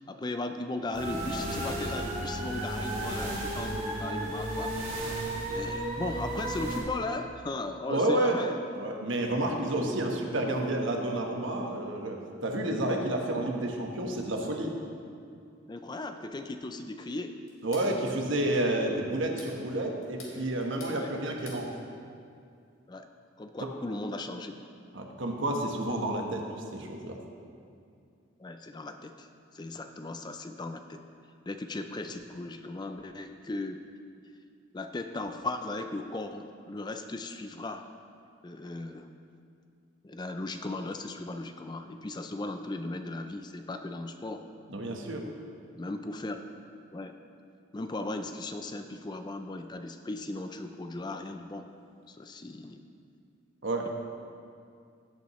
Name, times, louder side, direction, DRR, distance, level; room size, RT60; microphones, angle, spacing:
voice 1, 0.0-5.0 5.5-8.6 15.7-17.4 20.9-21.1 22.9-23.1 23.4-24.5 28.4-29.3 29.5-31.0 31.5-33.8 34.7-37.9 38.4-39.1 40.0-44.5 45.8-46.4 46.9-47.2 47.7-51.7 52.1-52.8 53.8-53.9, left 2 dB, 20° left, 7 dB, 0.4 m, -37 dB
sound 1, 0.9-6.8, right 1 dB, 35° right, 2.8 m, -33 dB
voice 2, 7.9-8.4 8.7-14.7 17.6-21.7 23.6-23.7 24.9-27.2 44.7-45.2 53.6-53.9, right 1 dB, 70° right, 2 dB, 1.2 m, -30 dB
sound 2, 17.5-17.9 19.1-19.6 20.0-21.0 21.2-21.6, left 3 dB, 85° left, 2.4 m, -48 dB
16.5 x 8.3 x 3.1 m, 2.4 s
head